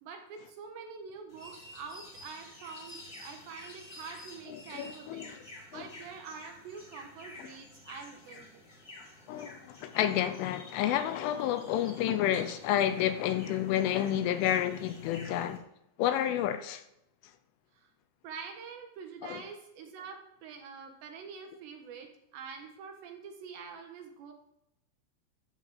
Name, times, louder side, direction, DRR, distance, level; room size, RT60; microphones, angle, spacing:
voice 1, 0.0-5.3 5.7-8.6 17.7-17.9 18.2-24.3, right 6 dB, 70° right, 3.1 m, -46 dB
sound 1, 1.3-15.6, left 1 dB, 25° left, 1.6 m, -50 dB
voice 2, 4.5-5.4 5.7-5.8 9.3-15.6 16.0-16.8 19.2-19.4, left 11 dB, 80° left, 3.1 m, -30 dB
14.0 x 5.3 x 7.4 m
omnidirectional pair, 5.9 m